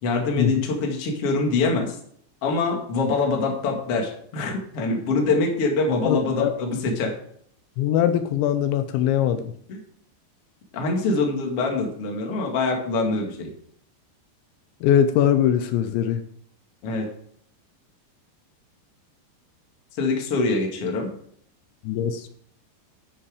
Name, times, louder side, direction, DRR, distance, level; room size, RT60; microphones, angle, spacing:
voice 1, 0.0-2.0 2.4-7.1 9.7-9.8 10.7-13.5 16.8-17.1 20.0-21.1, left 3 dB, 45° left, 1 dB, 2.2 m, -24 dB
voice 2, 6.0-6.5 7.8-9.5 14.8-16.2 21.8-22.3, left 10 dB, 80° left, 9 dB, 3.0 m, -21 dB
9.9 x 8.6 x 5.0 m, 0.65 s
omnidirectional pair, 5.3 m